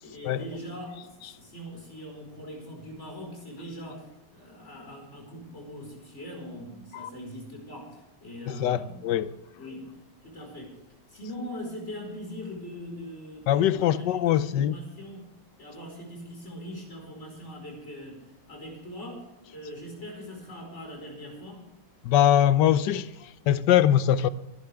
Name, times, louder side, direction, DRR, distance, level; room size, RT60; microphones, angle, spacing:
voice 1, 0.0-9.1 9.5-9.9 10.2-10.7 11.1-15.3 15.6-21.7, equal, 40° left, 5.1 m, -41 dB
voice 2, 8.5-9.3 13.5-14.7 22.0-24.3, left 11 dB, 75° left, 1.3 m, -22 dB
23.5 x 11.5 x 3.5 m
omnidirectional pair, 1.9 m